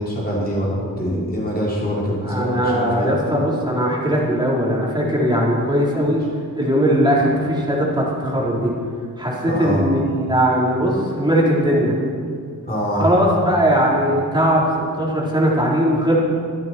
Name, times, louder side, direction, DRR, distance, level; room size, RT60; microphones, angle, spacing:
voice 1, 0.0-3.1 9.5-9.8 12.6-13.0, equal, 25° left, -6 dB, 5.0 m, -24 dB
voice 2, 2.2-6.2 6.5-8.7 9.2-12.0 13.0-14.6 15.0-16.2, equal, 15° right, -5 dB, 4.4 m, -19 dB
27.0 x 8.9 x 4.6 m, 2.2 s
wide cardioid pair, 75°, 35 cm